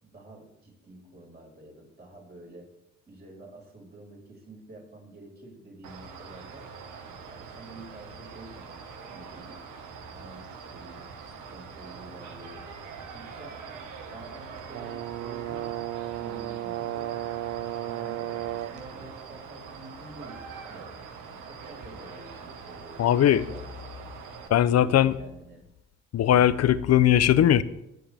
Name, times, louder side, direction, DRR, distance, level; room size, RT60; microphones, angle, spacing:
voice 1, 0.0-2.7 3.1-6.7 7.3-9.6 10.1-12.7 13.1-13.6 14.1-15.7 16.1-17.2 17.8-20.9 21.4-23.7 24.4-25.7, right 2 dB, 35° right, -2 dB, 5.6 m, -48 dB
sound 1, 5.8-24.5, right 5 dB, 85° right, 1.6 m, -43 dB
Brass instrument, 14.7-18.9, right 14 dB, 55° right, 0.4 m, -34 dB
voice 2, 23.0-23.4 24.5-25.2 26.1-27.6, left 11 dB, 60° left, 15 dB, 0.7 m, -19 dB
21.5 x 7.9 x 3.5 m, 0.87 s
cardioid pair, 90°, 30 cm